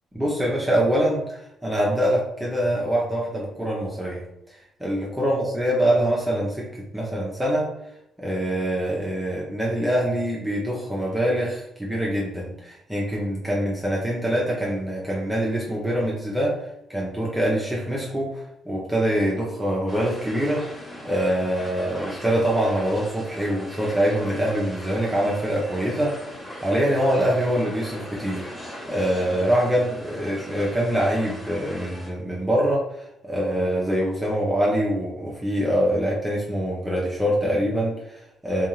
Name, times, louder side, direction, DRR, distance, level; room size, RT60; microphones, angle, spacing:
voice 1, 0.1-6.7 6.9-7.7 8.2-16.6 16.9-20.6 21.0-26.1 26.6-38.7, equal, 5° right, -5 dB, 0.7 m, -24 dB
sound 1, 19.9-32.1, equal, 20° left, 1.0 m, -39 dB
2.5 x 2.3 x 3.1 m, 0.79 s
cardioid pair, 90°, 0 cm